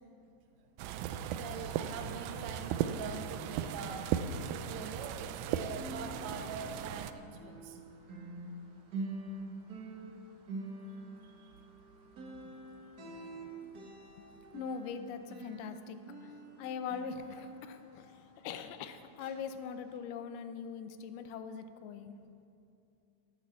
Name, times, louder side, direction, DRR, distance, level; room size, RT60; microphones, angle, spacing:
voice 1, 0.8-7.8 11.2-11.4 13.0-13.5, right 5 dB, 65° right, 5 dB, 1.5 m, -44 dB
sound 1, 0.8-7.1, right 9 dB, 80° right, 1.9 m, -37 dB
sound 2, 3.4-5.4 5.7-18.8 19.2-19.4 19.9-20.0, right 1 dB, 45° right, 1.3 m, -46 dB
voice 2, 14.5-16.3 16.6-22.1, left 6 dB, 85° left, 9 dB, 2.4 m, -42 dB
12.0 x 9.3 x 7.2 m, 2.7 s
omnidirectional pair, 3.7 m